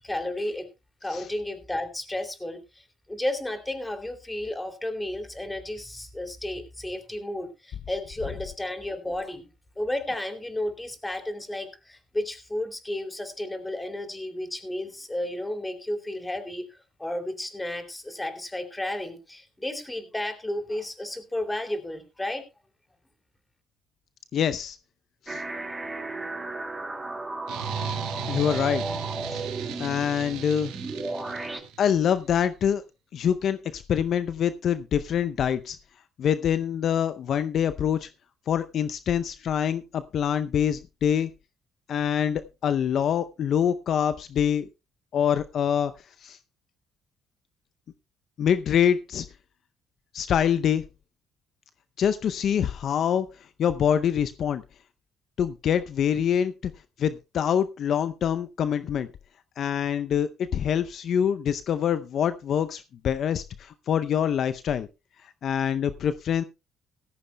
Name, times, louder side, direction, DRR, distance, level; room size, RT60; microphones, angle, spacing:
voice 1, 0.0-0.7 1.0-9.5 9.8-22.4, left 1 dB, 15° left, 7 dB, 2.7 m, -33 dB
voice 2, 24.3-24.8 25.3-25.4 28.3-28.8 29.3-29.5 29.8-30.7 31.8-32.8 33.1-35.8 36.2-38.1 38.5-41.3 41.9-44.7 45.1-45.9 46.2-46.4 48.4-49.3 50.1-50.8 52.0-53.3 53.6-54.6 55.4-56.7 57.0-59.1 59.6-64.9 65.2-66.4, left 8 dB, 65° left, 12 dB, 0.5 m, -25 dB
sound 1, 25.3-31.6, right 2 dB, 20° right, 2.3 m, -34 dB
sound 2, 27.5-31.9, right 8 dB, 85° right, 1.7 m, -35 dB
16.5 x 14.0 x 2.2 m, 0.25 s
supercardioid pair, 65°, 0 cm